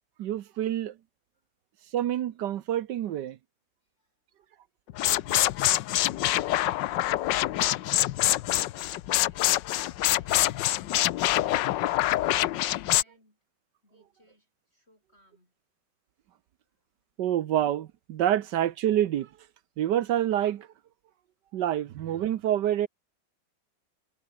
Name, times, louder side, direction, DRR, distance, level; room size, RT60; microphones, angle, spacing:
voice 1, 0.2-1.0 1.9-3.4 17.2-19.3 19.8-20.7 21.5-22.9, right 11 dB, 70° right, 1.4 m, -27 dB
voice 2, 3.8-4.6 11.6-13.4 13.8-15.5 16.6-16.9, left 1 dB, 30° left, 8.4 m, -64 dB
sound 1, 4.9-13.0, left 14 dB, 75° left, 1.3 m, -25 dB
omnidirectional pair, 2.1 m